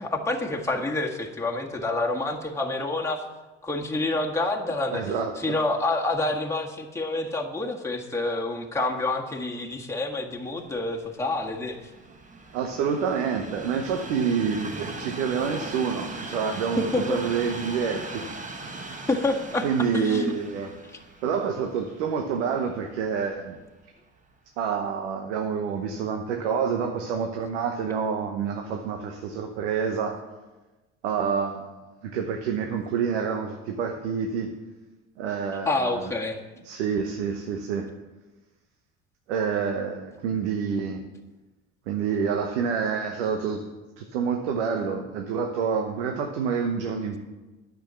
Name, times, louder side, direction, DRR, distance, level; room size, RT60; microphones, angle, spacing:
voice 1, 0.0-3.2 3.6-5.0 5.4-11.8 16.8-17.2 19.1-20.3 35.6-36.4, left 2 dB, 10° left, 0 dB, 1.6 m, -28 dB
voice 2, 4.9-5.6 12.5-18.2 19.6-20.7 21.2-23.6 24.6-30.2 31.0-31.7 32.0-34.5 35.2-36.1 36.6-37.9 39.3-41.0 41.9-43.6 44.0-47.2, right 6 dB, 80° right, 4 dB, 1.0 m, -28 dB
Train, 10.4-23.6 24.2-24.4, right 3 dB, 20° right, 1.5 m, -40 dB
10.5 x 6.4 x 7.0 m, 1.2 s
hypercardioid pair, 70°, 34 cm